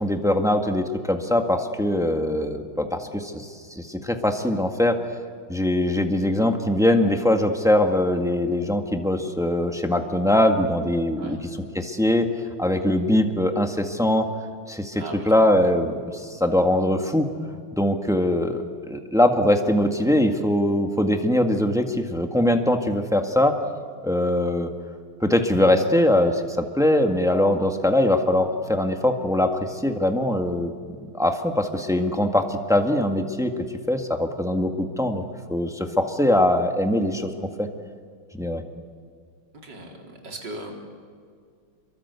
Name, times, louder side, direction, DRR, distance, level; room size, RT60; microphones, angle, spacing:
voice 1, 0.0-5.0 5.5-11.4 11.7-12.3 12.6-14.3 14.7-17.3 17.8-23.6 24.0-24.7 25.2-30.7 31.1-33.5 33.9-35.2 35.5-37.3 37.6-37.7 38.3-38.6, left 1 dB, ahead, 5 dB, 1.5 m, -22 dB
voice 2, 14.9-15.3 39.6-40.9, right 1 dB, 50° right, 1 dB, 4.7 m, -38 dB
28.0 x 23.0 x 8.3 m, 2.1 s
omnidirectional pair, 2.4 m